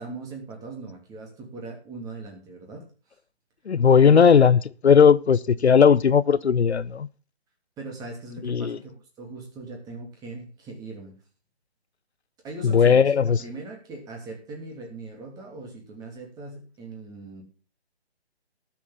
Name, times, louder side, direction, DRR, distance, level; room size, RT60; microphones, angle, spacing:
voice 1, 0.0-2.9 4.0-4.2 7.8-11.1 12.4-13.1 13.4-17.4, right 3 dB, 10° right, 2.9 m, -39 dB
voice 2, 3.7-7.1 8.4-8.8 12.6-13.4, left 6 dB, 80° left, 0.8 m, -17 dB
20.0 x 7.2 x 3.8 m
figure-of-eight pair, 150°, 33 cm